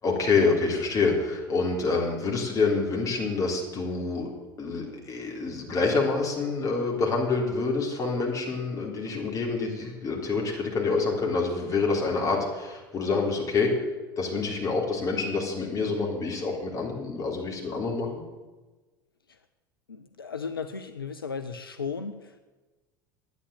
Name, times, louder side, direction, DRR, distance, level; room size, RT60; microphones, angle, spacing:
voice 1, 0.0-4.3 4.6-13.7 14.2-18.2, left 4 dB, 30° left, 0 dB, 3.5 m, -27 dB
voice 2, 19.9-22.4, left 5 dB, 80° left, 8 dB, 0.6 m, -35 dB
10.5 x 9.7 x 7.7 m, 1.2 s
figure-of-eight pair, 75°, 12 cm